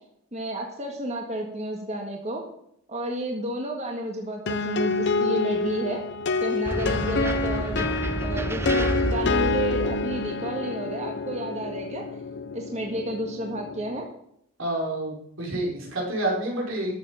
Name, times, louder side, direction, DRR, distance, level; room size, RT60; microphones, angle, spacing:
voice 1, 0.3-2.4 2.9-6.0 6.4-7.9 8.2-12.0 12.5-14.1, right 1 dB, 35° right, 1 dB, 1.6 m, -31 dB
sound 1, 4.5-14.1, left 3 dB, 60° left, 0.7 m, -28 dB
sound 2, 6.6-10.3, right 1 dB, 10° right, 0.5 m, -30 dB
voice 2, 14.6-16.9, right 1 dB, 80° right, -1 dB, 4.4 m, -28 dB
13.0 x 7.0 x 5.6 m, 0.72 s
head